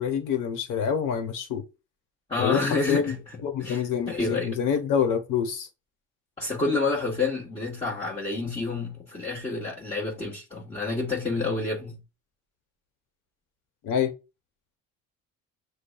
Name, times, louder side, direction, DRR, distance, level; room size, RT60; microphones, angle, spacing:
voice 1, 0.0-1.6 2.4-3.1 3.4-5.7 13.8-14.1, left 7 dB, 65° left, 1.1 m, -26 dB
voice 2, 2.3-4.6 6.4-12.0, left 3 dB, 15° left, 1.2 m, -29 dB
6.6 x 2.2 x 2.3 m
supercardioid pair, 95°, 34 cm